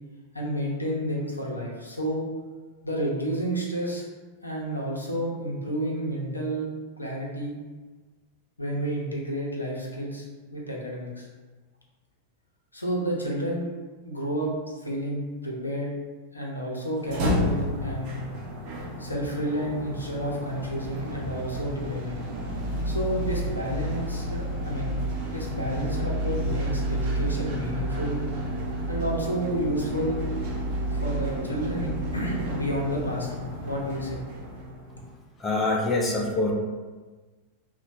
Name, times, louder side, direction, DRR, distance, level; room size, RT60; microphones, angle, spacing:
voice 1, 0.3-2.2 2.8-4.1 4.4-6.7 7.0-7.5 8.6-10.2 10.5-11.3 12.7-13.7 14.0-14.5 14.8-15.9 16.3-18.2 19.0-22.2 22.8-24.9 25.3-28.2 28.9-30.2 30.9-34.2, equal, 85° left, -3 dB, 0.5 m, -30 dB
sound 1, 16.9-35.1, equal, 45° right, 0.5 m, -31 dB
voice 2, 35.4-36.5, left 2 dB, 20° left, -1 dB, 0.4 m, -25 dB
2.8 x 2.0 x 2.6 m, 1.3 s
figure-of-eight pair, 90°, 0 cm